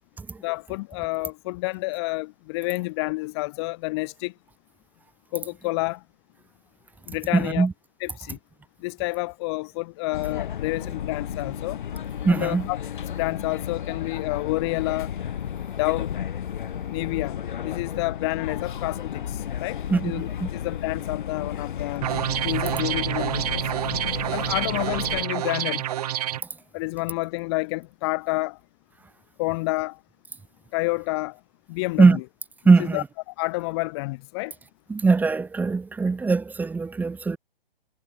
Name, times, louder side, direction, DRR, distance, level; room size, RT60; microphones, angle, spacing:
voice 1, 0.4-4.3 5.3-6.0 7.1-7.7 8.0-8.4 8.8-11.8 12.3-12.8 13.1-15.1 15.7-16.1 16.9-22.1 22.4-23.7 24.3-25.8 26.7-28.6 29.4-30.0 30.7-31.4 31.7-32.2 32.9-34.5, left 24 dB, 25° left, 1.2 m, -29 dB
voice 2, 7.3-7.7 12.2-12.7 19.9-20.5 32.0-32.2 32.7-33.0 34.9-37.4, right 4 dB, 5° right, 1.9 m, -20 dB
sound 1, 10.1-25.2, left 9 dB, 55° left, 2.0 m, -33 dB
sound 2, 22.0-26.4, right 12 dB, 40° right, 0.9 m, -27 dB
figure-of-eight pair, 135°, 30 cm